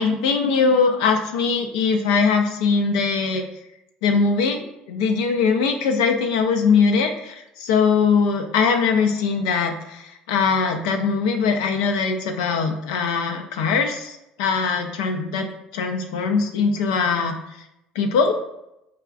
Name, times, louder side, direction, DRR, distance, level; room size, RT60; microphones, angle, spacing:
voice 1, 0.0-3.4 4.0-15.5 15.7-17.4 18.0-18.3, left 5 dB, 85° left, 5 dB, 0.4 m, -21 dB
4.7 x 2.3 x 2.3 m, 0.85 s
hypercardioid pair, 75°, 3 cm